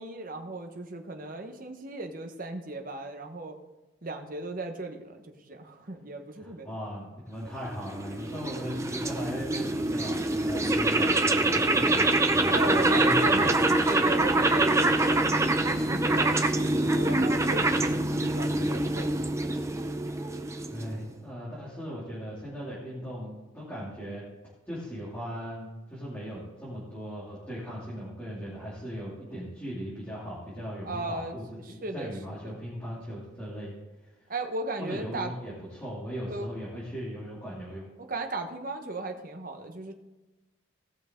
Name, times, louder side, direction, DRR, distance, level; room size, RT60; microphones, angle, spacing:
voice 1, 0.0-3.6 4.0-6.7 12.4-13.6 13.9-19.5 30.8-31.4 31.7-32.5 34.3-35.3 36.3-36.5 38.0-39.9, right 2 dB, 40° right, 5 dB, 1.1 m, -36 dB
voice 2, 6.3-13.7 20.7-24.2 24.6-33.7 34.8-37.9, equal, 10° left, -10 dB, 2.6 m, -38 dB
sound 1, 7.7-21.1, right 2 dB, 15° right, 0.5 m, -25 dB
18.0 x 6.1 x 3.7 m, 1.1 s
head